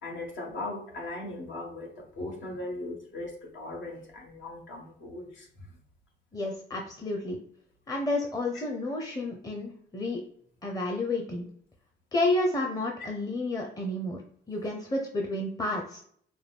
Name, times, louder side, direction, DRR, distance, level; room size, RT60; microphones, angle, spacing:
voice 1, 0.0-5.5, left 2 dB, 70° left, 0 dB, 1.4 m, -38 dB
voice 2, 6.3-7.4 7.9-10.2 10.6-11.5 12.1-14.2 14.5-16.0, left 2 dB, 20° left, 0 dB, 0.7 m, -30 dB
4.8 x 2.3 x 3.3 m, 0.63 s
cardioid pair, 90°, 20 cm